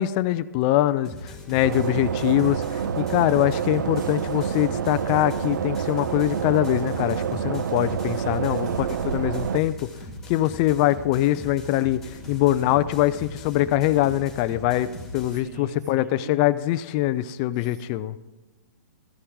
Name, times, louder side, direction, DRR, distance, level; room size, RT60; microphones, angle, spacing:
voice 1, 0.0-9.8 10.3-18.2, left 14 dB, 25° left, 15 dB, 0.3 m, -23 dB
sound 1, 1.0-15.4, left 1 dB, 5° left, 2.2 m, -40 dB
sound 2, 1.6-9.6, right 8 dB, 90° right, 0.4 m, -28 dB
voice 2, 8.2-8.7 12.2-12.4 15.3-16.4 17.6-17.8, right 2 dB, 70° right, 4 dB, 2.3 m, -41 dB
14.5 x 10.0 x 4.6 m, 1.1 s
hypercardioid pair, 155°, 10 cm